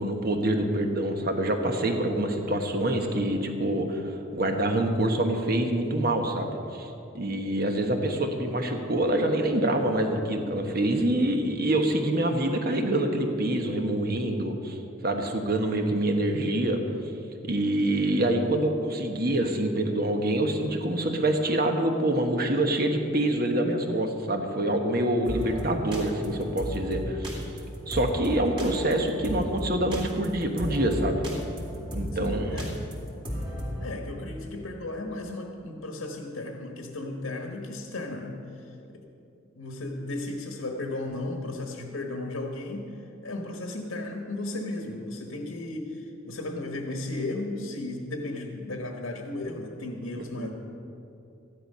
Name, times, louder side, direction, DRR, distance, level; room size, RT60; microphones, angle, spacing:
voice 1, 0.0-16.8 17.4-27.4 27.9-31.2 31.9-32.6 50.4-50.5, right 1 dB, 45° right, 4 dB, 1.2 m, -26 dB
sound 1, 25.3-33.9, equal, 25° right, 2.3 m, -34 dB
voice 2, 32.1-32.9 33.8-39.0 39.6-42.9 43.2-50.5, left 2 dB, 85° left, 3 dB, 1.3 m, -35 dB
14.5 x 11.0 x 5.5 m, 2.8 s
head